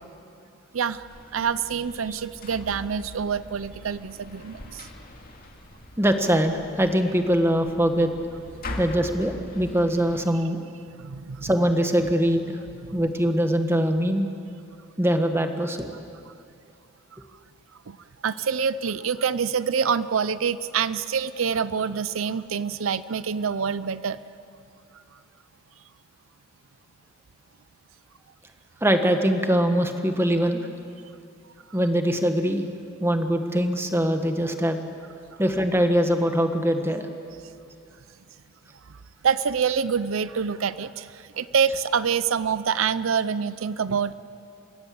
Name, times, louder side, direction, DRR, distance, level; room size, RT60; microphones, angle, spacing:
voice 1, 0.7-4.9 11.0-11.5 12.9-13.0 16.3-16.4 17.9-18.0 18.2-24.2 39.2-44.1, right 6 dB, 85° right, 15 dB, 0.6 m, -26 dB
sound 1, 1.1-10.2, left 1 dB, 50° left, 2.2 m, -42 dB
voice 2, 6.0-8.1 8.8-10.6 11.4-12.6 12.9-14.3 15.0-15.9 28.8-30.7 31.7-32.6 33.0-34.8 35.4-37.1, equal, 10° right, 6 dB, 1.5 m, -22 dB
29.0 x 16.5 x 7.9 m, 2.5 s
head